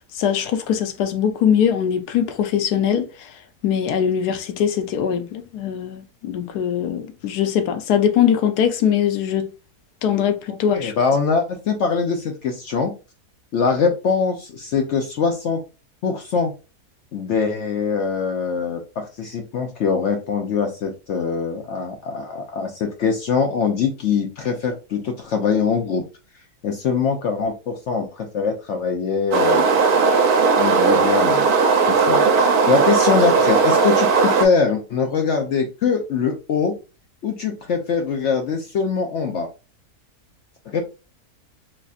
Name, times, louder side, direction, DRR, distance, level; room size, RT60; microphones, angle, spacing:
voice 1, 0.0-3.1 3.6-9.5 10.0-10.9, left 8 dB, 85° left, 1.2 m, -21 dB
voice 2, 10.7-12.9 13.5-15.6 16.0-16.5 17.1-26.1 26.6-29.7 30.5-31.5 31.9-36.8 37.2-39.5 40.7-40.8, left 5 dB, 65° left, 0.7 m, -23 dB
sound 1, 29.3-34.4, right 5 dB, 75° right, 1.2 m, -17 dB
4.0 x 2.6 x 2.4 m
omnidirectional pair, 1.6 m